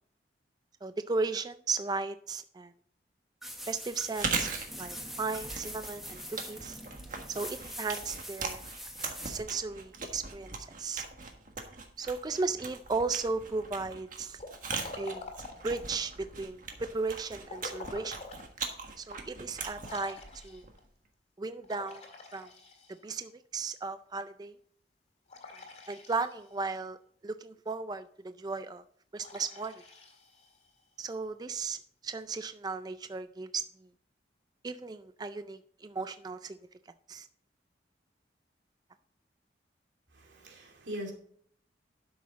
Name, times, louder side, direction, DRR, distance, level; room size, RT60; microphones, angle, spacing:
voice 1, 0.8-2.7 3.7-4.5 4.8-6.8 7.3-8.6 9.0-11.0 12.0-14.4 15.0-15.3 15.6-18.1 19.0-20.2 20.4-20.6 21.4-22.0 22.3-22.5 23.0-24.5 25.9-27.0 27.2-28.8 29.1-29.8 31.0-33.6 34.6-36.6 37.1-37.3, right 4 dB, 20° right, 11 dB, 0.3 m, -35 dB
sound 1, 3.4-9.4, equal, ahead, 1.2 m, -43 dB
Chewing mastication, 4.0-20.9, right 4 dB, 45° right, 1.5 m, -40 dB
Liquid, 14.4-16.0 17.4-18.5 19.0-19.1 19.8-20.8 21.6-23.3 25.3-26.6 29.2-30.8, left 3 dB, 35° left, 1.9 m, -47 dB
voice 2, 40.1-41.1, equal, 85° right, 1 dB, 2.6 m, -41 dB
12.0 x 6.3 x 4.0 m, 0.63 s
head